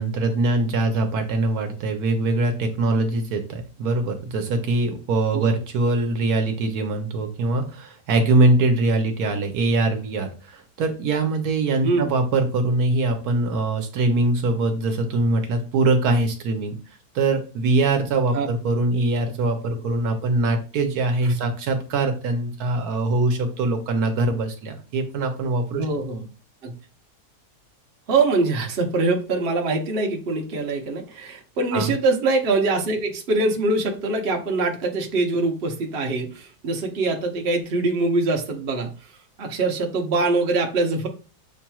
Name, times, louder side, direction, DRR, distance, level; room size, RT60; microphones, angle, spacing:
voice 1, 0.0-16.7 17.1-25.9 31.7-31.9, right 2 dB, 75° right, 5 dB, 1.2 m, -22 dB
voice 2, 25.8-26.3 26.6-26.7 28.1-38.9 39.4-41.1, right 3 dB, 45° right, 2 dB, 0.8 m, -23 dB
7.2 x 2.9 x 2.3 m, 0.36 s
omnidirectional pair, 1.8 m